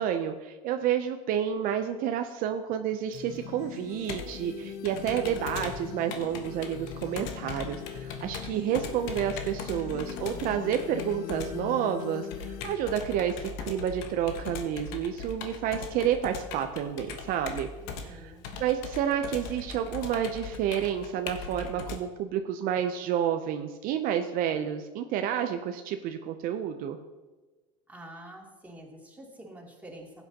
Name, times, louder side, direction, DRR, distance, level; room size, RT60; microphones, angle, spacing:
voice 1, 0.0-17.7 18.0-18.3 18.6-27.0, right 9 dB, 60° right, 6 dB, 0.7 m, -30 dB
Computer keyboard, 3.1-22.0, left 4 dB, 75° left, 1.2 m, -40 dB
sound 1, 3.1-12.7, left 10 dB, 60° left, 0.6 m, -41 dB
voice 2, 17.8-18.5 27.9-30.2, right 1 dB, 10° right, -3 dB, 2.8 m, -47 dB
15.0 x 8.2 x 2.9 m, 1.3 s
supercardioid pair, 100°, 16 cm